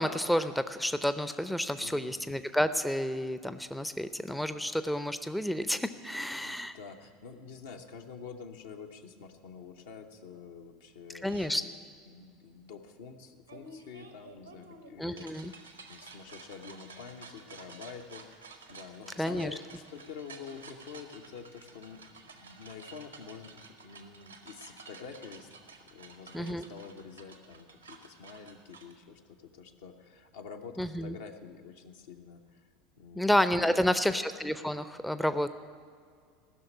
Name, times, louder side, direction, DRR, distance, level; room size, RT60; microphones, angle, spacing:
voice 1, 0.0-6.7 11.2-11.6 15.0-15.5 19.2-19.6 26.3-26.6 30.8-31.2 33.1-35.5, equal, 5° left, 12 dB, 0.5 m, -30 dB
voice 2, 1.8-2.2 6.4-11.7 12.1-18.2 18.7-25.5 25.9-32.7 33.0-34.2, left 6 dB, 70° left, 3 dB, 1.0 m, -47 dB
sound 1, 11.2-11.5 13.5-28.9, right 4 dB, 90° right, 1.2 m, -52 dB
15.5 x 6.5 x 9.5 m, 2.1 s
figure-of-eight pair, 75°, 0 cm